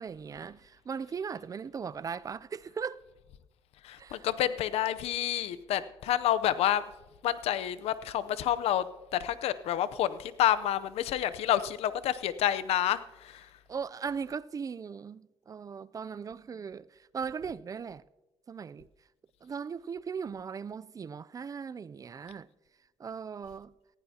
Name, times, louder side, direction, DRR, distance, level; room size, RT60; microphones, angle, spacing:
voice 1, 0.0-3.0 4.0-4.3 13.7-18.0 18.5-18.9 19.4-22.5 23.0-23.7, right 6 dB, 35° right, 0.4 m, -38 dB
voice 2, 3.8-6.8 7.2-8.8 9.1-13.5, left 11 dB, 85° left, 0.7 m, -29 dB
19.0 x 15.5 x 2.8 m
cardioid pair, 100°, 10 cm